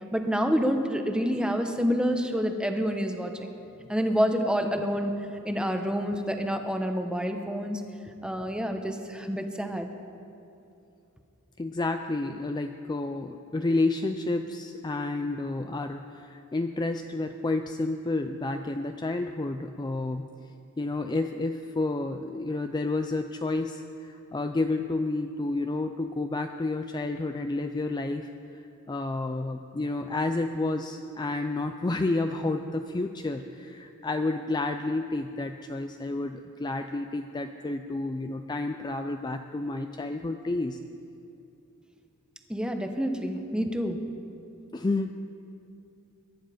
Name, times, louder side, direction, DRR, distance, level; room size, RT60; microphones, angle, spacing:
voice 1, 0.1-3.3 3.9-5.1 5.4-7.8 8.2-9.9 42.5-44.0, equal, 5° right, 5 dB, 1.0 m, -28 dB
voice 2, 11.6-20.2 20.8-28.3 28.9-40.8 44.7-45.2, left 2 dB, 20° left, 6 dB, 0.4 m, -30 dB
22.0 x 10.5 x 5.1 m, 2.7 s
head